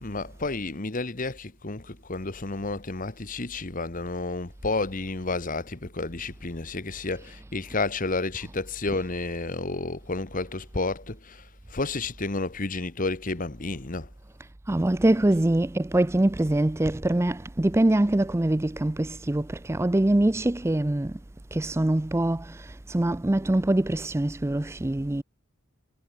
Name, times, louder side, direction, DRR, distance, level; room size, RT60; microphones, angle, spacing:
voice 1, 0.0-14.1, left 3 dB, 40° left, 1.3 m, -31 dB
voice 2, 14.7-21.1 21.5-22.4 22.9-25.2, right 1 dB, 10° right, 0.4 m, -23 dB
head